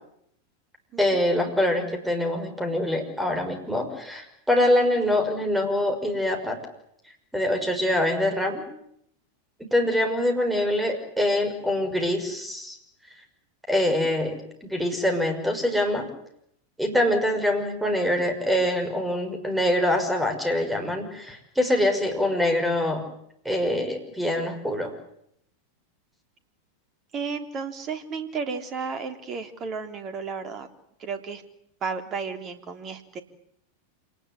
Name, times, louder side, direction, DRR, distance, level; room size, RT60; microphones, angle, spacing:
voice 1, 1.0-6.6 7.3-8.6 9.6-12.8 13.7-16.1 16.8-23.0 23.4-24.9, left 1 dB, 5° right, 6 dB, 6.0 m, -24 dB
voice 2, 27.1-30.7 31.0-31.4 31.8-33.2, right 5 dB, 30° right, 9 dB, 3.2 m, -33 dB
27.5 x 19.5 x 9.8 m, 0.73 s
figure-of-eight pair, 90°, 0 cm